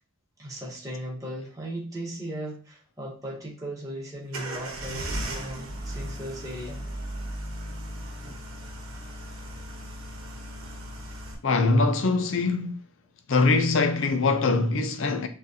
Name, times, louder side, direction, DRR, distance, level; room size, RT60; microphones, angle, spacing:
voice 1, 0.4-6.8, right 1 dB, 15° right, 1.2 m, -37 dB
sound 1, 4.3-11.3, right 1 dB, 80° right, 1.0 m, -36 dB
voice 2, 11.4-12.9 13.3-15.3, left 3 dB, 65° left, 0.6 m, -23 dB
6.0 x 2.5 x 2.8 m
head